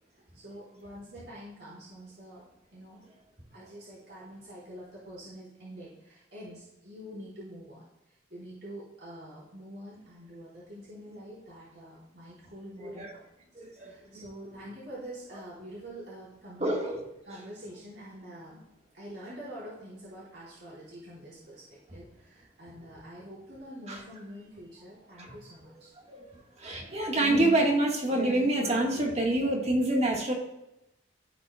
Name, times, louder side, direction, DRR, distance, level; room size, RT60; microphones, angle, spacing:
voice 1, 0.3-2.4 2.7-3.0 3.5-13.2 13.7-16.7 17.2-18.6 18.9-25.9, equal, 75° right, -8 dB, 2.9 m, -46 dB
voice 2, 12.8-13.1 13.5-14.2 16.6-17.0 23.9-24.0 25.2-25.3 26.1-26.3 26.6-30.3, right 1 dB, 35° right, 0 dB, 1.5 m, -27 dB
15.0 x 5.2 x 2.3 m, 0.91 s
head